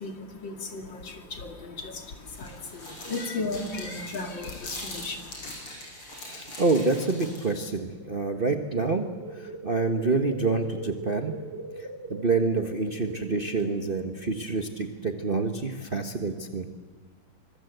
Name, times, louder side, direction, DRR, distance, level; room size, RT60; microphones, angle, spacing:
voice 1, 0.0-5.7, left 3 dB, 60° left, 5 dB, 3.1 m, -36 dB
sound 1, 1.9-7.6, left 1 dB, 80° left, 7.9 m, -42 dB
voice 2, 6.2-9.0 9.4-11.3 11.8-16.7, right 3 dB, 30° right, 5 dB, 1.1 m, -27 dB
sound 2, 7.7-14.4, right 2 dB, 50° right, 7.6 m, -41 dB
25.0 x 23.0 x 8.0 m, 1.4 s
omnidirectional pair, 2.4 m